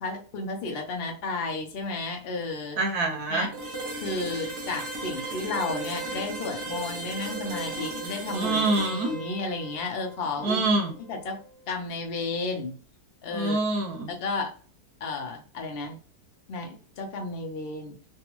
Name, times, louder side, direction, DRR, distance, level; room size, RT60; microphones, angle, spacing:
voice 1, 0.0-2.8 3.3-3.5 4.0-8.6 8.9-10.6 11.1-11.4 11.7-12.7 13.2-13.6 14.1-14.5 15.0-16.0 16.5-16.7 17.0-18.0, left 3 dB, 85° left, 2 dB, 0.5 m, -32 dB
voice 2, 2.8-3.5 8.3-9.1 10.4-10.9 13.3-14.1, right 2 dB, 70° right, 2 dB, 1.1 m, -25 dB
sound 1, 3.5-11.4, right 2 dB, 50° right, 0.9 m, -36 dB
3.3 x 2.3 x 2.9 m, 0.40 s
omnidirectional pair, 1.9 m